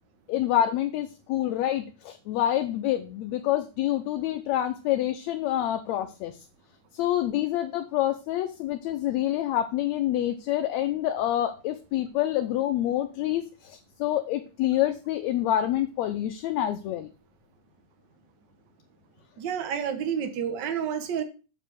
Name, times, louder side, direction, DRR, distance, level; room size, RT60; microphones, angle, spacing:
voice 1, 0.3-6.5 6.9-17.1, left 12 dB, 75° left, 7 dB, 1.8 m, -27 dB
voice 2, 19.4-21.2, right 8 dB, 55° right, 7 dB, 1.2 m, -29 dB
7.8 x 4.7 x 6.1 m, 0.34 s
omnidirectional pair, 3.4 m